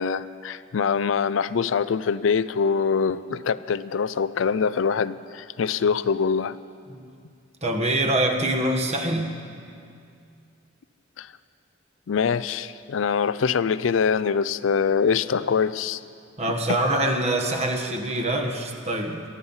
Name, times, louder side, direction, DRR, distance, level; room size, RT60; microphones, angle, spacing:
voice 1, 0.0-6.6 11.2-11.3 12.1-16.0 16.7-16.8, left 6 dB, 80° left, 15 dB, 0.4 m, -24 dB
voice 2, 7.6-9.4 16.4-19.2, right 1 dB, 35° right, 4 dB, 1.4 m, -24 dB
19.5 x 13.5 x 5.6 m, 2.4 s
head